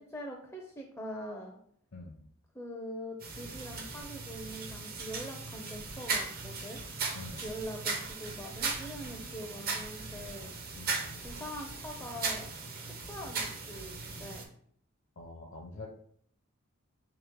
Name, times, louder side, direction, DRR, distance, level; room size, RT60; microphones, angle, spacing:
voice 1, 0.0-1.6 2.5-6.8 7.4-10.5 11.2-12.5 13.1-14.4, equal, 10° left, 1 dB, 0.4 m, -43 dB
voice 2, 1.9-2.3 7.1-7.5 10.8-11.3 15.2-15.9, left 2 dB, 65° left, 0 dB, 0.6 m, -46 dB
sound 1, 3.2-14.4, right 4 dB, 45° right, 0.6 m, -38 dB
3.2 x 2.9 x 3.5 m, 0.63 s
head